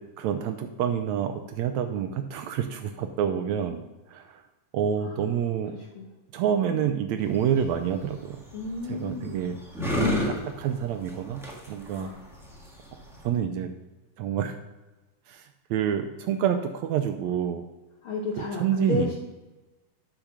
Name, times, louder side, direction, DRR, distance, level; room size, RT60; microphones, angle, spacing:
voice 1, 0.2-3.8 4.1-4.4 4.7-5.8 6.3-8.4 8.9-9.6 9.9-11.4 11.7-12.1 12.9-13.0 13.2-13.7 14.2-14.6 15.3-17.6 18.4-19.2, right 8 dB, 80° right, 7 dB, 1.7 m, -28 dB
voice 2, 6.6-7.0 8.5-9.4 11.9-12.2 18.0-19.2, left 3 dB, 80° left, -1 dB, 1.2 m, -32 dB
sound 1, 7.2-13.3, left 1 dB, ahead, 1.0 m, -32 dB
9.0 x 5.1 x 6.0 m, 1.1 s
omnidirectional pair, 3.7 m